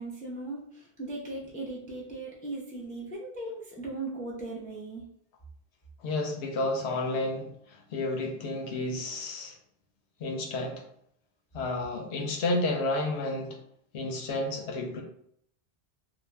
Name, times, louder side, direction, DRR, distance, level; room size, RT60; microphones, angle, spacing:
voice 1, 0.0-5.0, right 2 dB, 10° left, -5 dB, 0.3 m, -38 dB
voice 2, 6.0-9.6 10.2-10.8 11.5-13.6 13.9-15.0, left 2 dB, 90° left, 2 dB, 0.9 m, -31 dB
2.5 x 2.1 x 3.2 m, 0.70 s
omnidirectional pair, 1.1 m